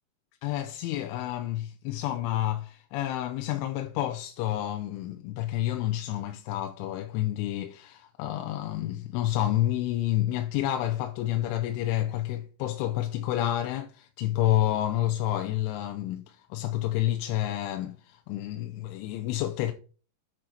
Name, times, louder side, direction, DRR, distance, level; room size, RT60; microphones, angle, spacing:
voice 1, 0.4-19.7, left 13 dB, 85° left, 3.1 m, -29 dB
8.6 x 6.3 x 4.4 m
omnidirectional pair, 5.4 m